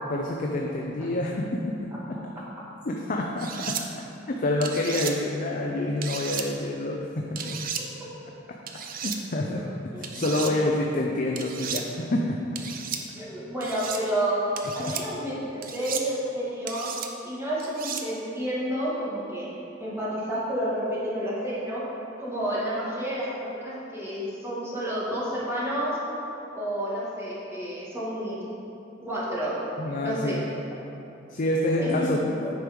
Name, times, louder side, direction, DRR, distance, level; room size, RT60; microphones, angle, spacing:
voice 1, 0.1-2.2 2.8-3.8 4.3-7.6 9.0-12.4 14.8-14.9 29.8-30.5 31.3-32.2, left 1 dB, 45° left, 0 dB, 0.5 m, -28 dB
sound 1, 3.4-3.8 4.6-5.1 6.0-6.5 7.4-7.8 8.7-9.2 10.0-10.5 11.4-11.8 12.6-13.0 13.6-14.0 14.6-15.0 15.6-16.1 16.7-17.1 17.6-18.0, right 7 dB, 50° right, 0.6 m, -34 dB
voice 2, 9.9-10.6 13.2-16.9 17.2-19.5 19.8-21.8 22.2-26.0 26.5-28.5 29.0-29.6 30.0-30.4 31.8-32.5, equal, 15° right, -8 dB, 1.9 m, -30 dB
9.5 x 4.7 x 5.2 m, 2.9 s
head